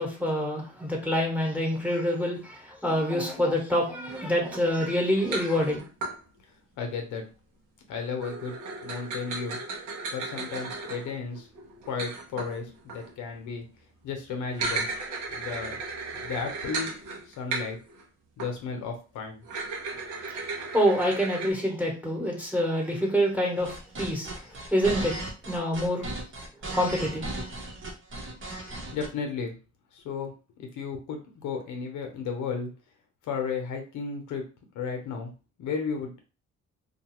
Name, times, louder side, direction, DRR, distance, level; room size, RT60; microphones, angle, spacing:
voice 1, 0.0-5.8 20.2-24.3 24.7-25.2 25.5-26.1 26.7-27.3, equal, 5° right, 1.1 m, -26 dB
sound 1, 4.1-6.2 8.2-13.1 14.4-18.0 18.4-18.6 19.4-21.5, right 3 dB, 85° right, 0.9 m, -36 dB
voice 2, 6.8-7.2 7.9-8.5 8.8-9.6 10.1-11.5 11.9-13.6 14.0-14.9 15.3-15.8 16.1-17.8 18.4-19.4 28.9-29.5 29.9-32.7 33.3-34.4 34.7-35.3 35.6-36.1, left 5 dB, 85° left, 0.8 m, -34 dB
sound 2, 23.6-29.1, right 2 dB, 40° right, 0.9 m, -36 dB
2.6 x 2.3 x 3.0 m
cardioid pair, 90°, 30 cm